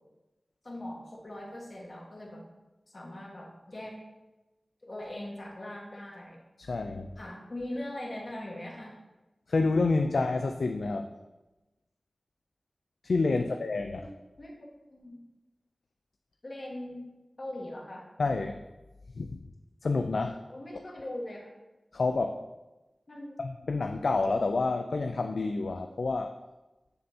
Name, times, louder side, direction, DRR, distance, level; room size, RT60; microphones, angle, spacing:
voice 1, 0.6-2.4 2.9-4.0 4.8-6.4 7.2-8.9 13.3-13.6 14.0-14.1 14.4-14.6 14.9-15.2 16.4-17.0 17.4-18.1 20.5-21.5 23.1-23.4, left 1 dB, 50° left, -1 dB, 1.4 m, -41 dB
voice 2, 6.6-7.1 9.5-11.1 13.0-14.1 18.2-18.6 19.2-19.4 19.8-20.4 21.9-22.4 23.4-26.3, left 3 dB, 85° left, 5 dB, 0.3 m, -28 dB
6.9 x 6.3 x 2.8 m, 1.1 s
wide cardioid pair, 65°, 0 cm